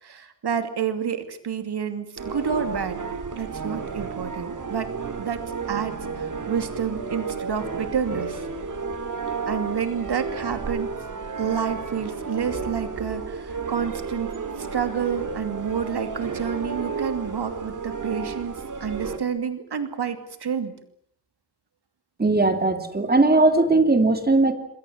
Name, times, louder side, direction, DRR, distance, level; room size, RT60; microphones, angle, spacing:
voice 1, 0.0-3.0 3.3-4.9 5.2-8.5 9.5-10.9 11.4-20.8, right 7 dB, 75° right, 9 dB, 2.7 m, -29 dB
sound 1, 2.2-19.2, right 5 dB, 50° right, 2.8 m, -32 dB
voice 2, 22.2-24.5, right 2 dB, 25° right, 7 dB, 2.7 m, -19 dB
27.0 x 22.0 x 7.5 m, 0.69 s
wide cardioid pair, 180°, 40 cm